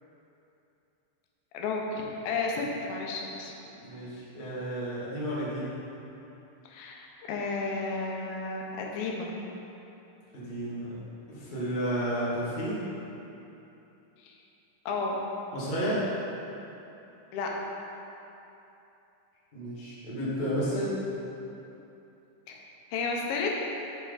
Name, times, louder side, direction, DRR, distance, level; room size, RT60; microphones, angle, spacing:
voice 1, 1.5-3.5 6.7-9.3 14.2-14.4 14.9-15.2 17.3-17.5 22.5-22.6 22.9-23.5, left 4 dB, 80° left, -1 dB, 2.6 m, -32 dB
voice 2, 3.8-5.7 10.3-10.9 11.3-12.8 15.5-16.0 19.5-20.9, equal, 35° left, -9 dB, 0.7 m, -32 dB
8.0 x 6.0 x 4.0 m, 2.9 s
omnidirectional pair, 4.3 m